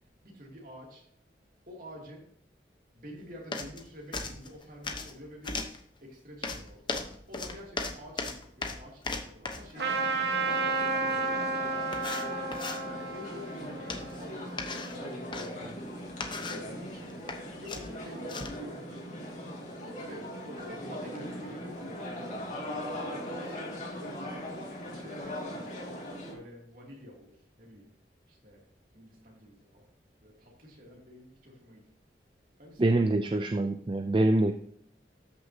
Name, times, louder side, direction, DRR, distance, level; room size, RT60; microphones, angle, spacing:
voice 1, 0.2-1.0 1.7-2.3 2.9-5.6 6.0-11.8 12.8-16.0 16.4-19.3 20.0-24.2 24.8-25.7 26.3-27.9 28.3-28.6 28.9-29.9 30.2-31.8 32.6-33.0, left 1 dB, 50° right, -2 dB, 2.7 m, -49 dB
sound 1, 3.5-3.8 4.1-5.1 5.4-5.8 6.4-9.7 11.2-11.3 11.9-12.8 13.9-14.2 14.6-15.5 16.1-16.7 17.1-17.4 17.7-18.6, left 3 dB, 25° left, 0.9 m, -36 dB
sound 2, 9.7-26.3, equal, 45° left, 2.2 m, -40 dB
Trumpet, 9.8-14.8, right 3 dB, 70° right, 1.4 m, -32 dB
voice 2, 32.8-34.5, right 2 dB, 25° right, 7 dB, 0.4 m, -25 dB
13.0 x 6.2 x 2.8 m, 0.67 s
head